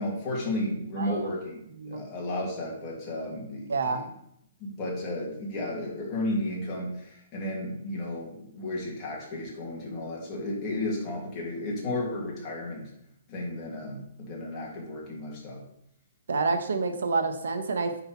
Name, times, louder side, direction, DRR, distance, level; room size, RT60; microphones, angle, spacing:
voice 1, 0.0-4.0 4.6-12.9 13.3-15.6, left 1 dB, 15° left, -3 dB, 1.8 m, -33 dB
voice 2, 3.7-4.0 16.3-18.0, right 4 dB, 80° right, 7 dB, 1.1 m, -28 dB
9.4 x 4.0 x 4.5 m, 0.74 s
hypercardioid pair, 175°, 0 cm